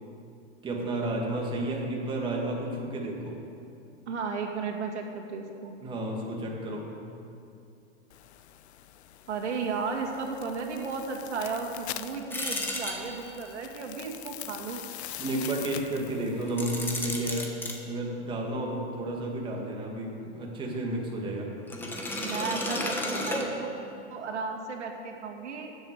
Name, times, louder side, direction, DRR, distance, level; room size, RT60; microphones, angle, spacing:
voice 1, 0.6-3.4 5.8-7.0 15.2-21.5, right 1 dB, 15° right, -1 dB, 1.9 m, -32 dB
voice 2, 4.1-5.8 9.3-14.8 22.2-23.7 24.1-25.7, right 5 dB, 90° right, 2 dB, 2.3 m, -34 dB
sound 1, 8.1-17.3, left 12 dB, 70° left, 0.7 m, -44 dB
sound 2, 12.3-13.5 16.5-17.8 21.7-24.0, left 1 dB, 5° left, 1.0 m, -33 dB
12.5 x 7.8 x 8.2 m, 2.6 s
supercardioid pair, 155°, 34 cm